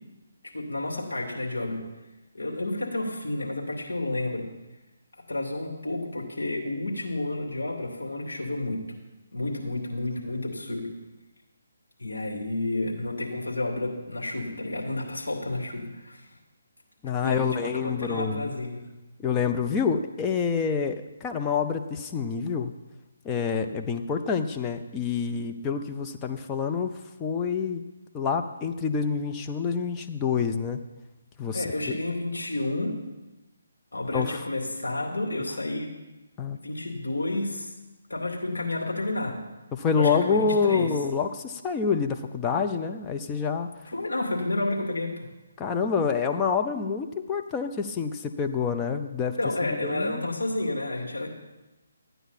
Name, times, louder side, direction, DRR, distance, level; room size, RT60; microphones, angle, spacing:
voice 1, 0.5-1.8 2.3-4.5 5.3-8.8 9.3-10.9 12.0-16.2 17.2-18.8 31.5-33.0 33.9-35.9 36.6-37.7 38.1-39.4 39.9-40.9 43.9-45.3 49.4-51.3, left 2 dB, 80° left, 0 dB, 2.7 m, -30 dB
voice 2, 17.0-18.5 19.2-22.7 23.2-27.8 28.1-30.8 31.4-31.7 34.1-34.4 36.4-36.6 39.7-43.7 45.6-49.4 49.8-50.3, left 6 dB, 15° left, 5 dB, 0.6 m, -27 dB
13.5 x 9.1 x 4.2 m, 1.1 s
figure-of-eight pair, 150°, 0 cm